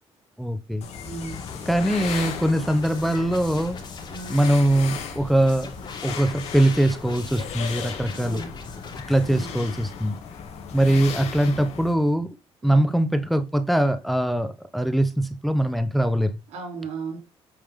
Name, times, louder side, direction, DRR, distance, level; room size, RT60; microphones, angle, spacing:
voice 1, 0.4-0.9 1.6-3.8 4.3-5.7 6.0-8.4 9.1-10.2 10.7-12.4 12.6-16.3, right 1 dB, ahead, 0.9 m, -22 dB
sound 1, 0.8-11.9, left 7 dB, 75° left, 2.4 m, -36 dB
voice 2, 1.0-1.4 4.1-4.4 8.1-8.5 9.2-9.5 12.6-12.9 16.5-17.2, right 4 dB, 85° right, 3.3 m, -36 dB
sound 2, 1.2-10.5, left 3 dB, 45° left, 3.4 m, -42 dB
8.6 x 5.4 x 3.7 m
cardioid pair, 95°, 11 cm